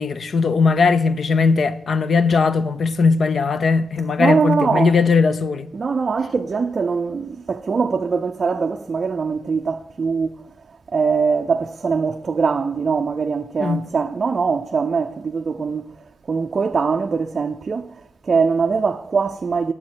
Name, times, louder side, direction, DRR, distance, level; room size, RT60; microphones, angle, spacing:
voice 1, 0.0-5.7 13.6-13.8, left 4 dB, 55° left, 0.6 m, -18 dB
voice 2, 4.2-5.0 5.7-10.4 10.9-16.0 16.3-19.7, right 5 dB, 40° right, 0.4 m, -22 dB
9.7 x 7.0 x 6.1 m
wide cardioid pair, 125°, 0 cm